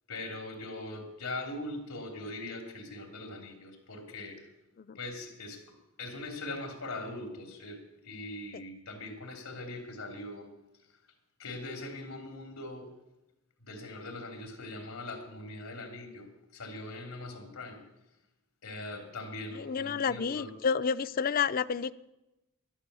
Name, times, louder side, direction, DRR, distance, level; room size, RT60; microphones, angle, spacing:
voice 1, 0.1-4.4 4.9-10.5 11.4-12.9 13.7-17.8 18.6-20.5, left 2 dB, 85° left, 3.1 m, -41 dB
voice 2, 19.6-21.9, left 6 dB, 40° left, 0.4 m, -30 dB
12.0 x 11.5 x 6.9 m
head